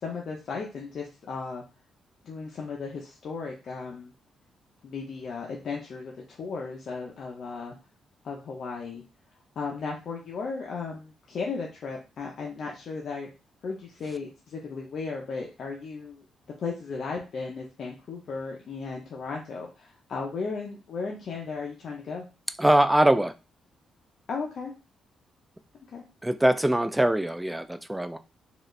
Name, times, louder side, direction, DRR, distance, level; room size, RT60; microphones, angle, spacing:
voice 1, 0.0-1.6 2.2-4.1 4.8-7.7 8.2-9.0 9.6-13.3 13.6-16.2 16.6-22.2 24.3-24.7 25.9-26.0, left 4 dB, 60° left, 0.7 m, -35 dB
voice 2, 22.6-23.3 26.2-28.2, right 1 dB, 10° right, 0.3 m, -22 dB
4.0 x 2.4 x 3.2 m
cardioid pair, 100°, 0 cm